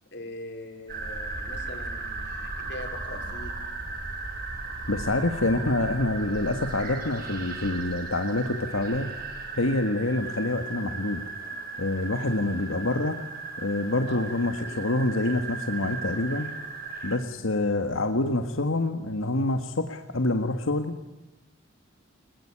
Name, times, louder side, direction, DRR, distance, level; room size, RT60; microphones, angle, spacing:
voice 1, 0.1-3.6 14.1-14.2 14.7-14.8, left 1 dB, 55° left, 4 dB, 5.0 m, -41 dB
sound 1, 0.9-17.2, right 3 dB, 45° right, 5.9 m, -36 dB
voice 2, 4.9-9.1 9.6-11.2 11.8-13.2 13.6-16.5 17.0-21.0, left 2 dB, 85° left, 6 dB, 1.7 m, -26 dB
22.0 x 21.5 x 8.8 m, 1.0 s
head